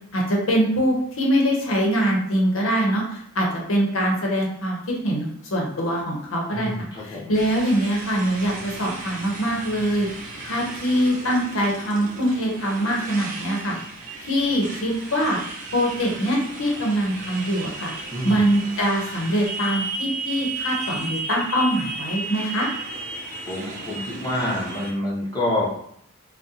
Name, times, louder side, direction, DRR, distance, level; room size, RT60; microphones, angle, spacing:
voice 1, 0.1-10.1 10.4-13.8 14.2-15.4 15.7-17.9 18.2-22.7, equal, 65° left, -1 dB, 0.8 m, -23 dB
voice 2, 6.5-7.3 18.1-18.5 23.5-25.7, left 1 dB, 15° left, -6 dB, 0.7 m, -27 dB
Motorcycle, 7.3-24.9, right 2 dB, 35° right, 0.6 m, -35 dB
2.7 x 2.1 x 3.7 m, 0.67 s
head